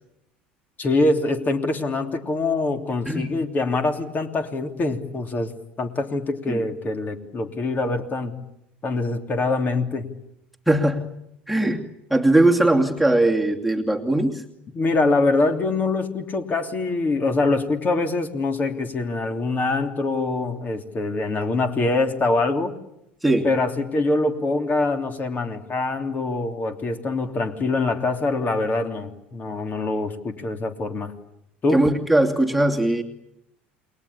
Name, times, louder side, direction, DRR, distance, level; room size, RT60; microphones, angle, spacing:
voice 1, 0.8-5.5 5.8-8.4 8.8-10.1 14.7-22.7 23.4-31.1 31.6-31.8, left 3 dB, 30° left, 6 dB, 3.3 m, -24 dB
voice 2, 10.7-11.0 11.5-14.4 23.2-23.5 31.7-33.0, right 1 dB, ahead, 4 dB, 2.7 m, -20 dB
29.0 x 22.0 x 8.7 m, 0.82 s
hypercardioid pair, 75°, 6 cm